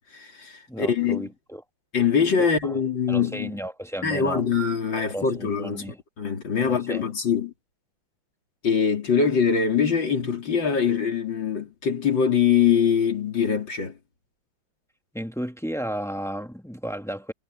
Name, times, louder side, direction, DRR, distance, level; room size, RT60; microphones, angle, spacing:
voice 1, 0.1-1.3 1.9-3.6 4.0-7.5 8.6-14.0, left 6 dB, 60° left, 4.0 m, -23 dB
voice 2, 0.7-1.6 2.4-2.8 3.1-4.5 5.0-6.0 6.6-7.0 15.1-17.3, equal, ahead, 1.0 m, -33 dB
omnidirectional pair, 2.4 m